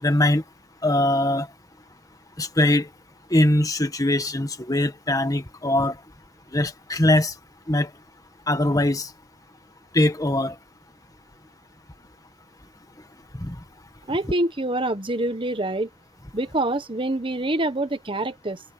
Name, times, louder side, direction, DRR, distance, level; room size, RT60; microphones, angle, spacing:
voice 1, 0.0-0.4 0.8-1.5 2.4-2.9 3.3-5.9 6.5-7.3 7.7-7.9 8.5-9.1 9.9-10.5 13.4-13.5, left 1 dB, 20° left, 1.7 m, -21 dB
voice 2, 14.1-15.9 16.3-18.6, right 1 dB, 30° right, 1.3 m, -26 dB
open air
head